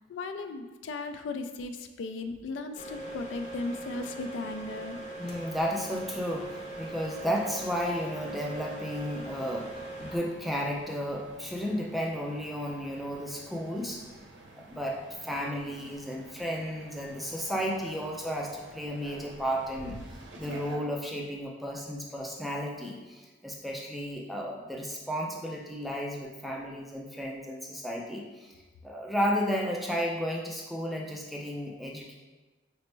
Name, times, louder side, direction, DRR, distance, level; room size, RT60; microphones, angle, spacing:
voice 1, 0.1-5.0, left 3 dB, 90° left, 8 dB, 0.3 m, -36 dB
sound 1, 2.7-10.2, right 2 dB, 40° left, 0.6 m, -41 dB
voice 2, 5.2-9.7 10.0-14.0 14.7-20.0 20.4-28.5 28.8-32.2, equal, ahead, -1 dB, 0.3 m, -33 dB
sound 2, 5.2-20.8, right 2 dB, 80° right, 0.6 m, -50 dB
5.0 x 2.0 x 3.2 m, 1.2 s
head